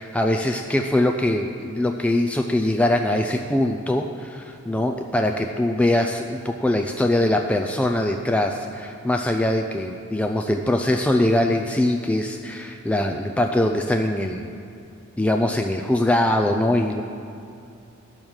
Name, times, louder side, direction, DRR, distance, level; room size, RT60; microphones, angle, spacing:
voice 1, 0.0-14.5 15.2-17.0, left 1 dB, 5° left, 3 dB, 0.3 m, -22 dB
10.5 x 6.2 x 7.2 m, 2.6 s
head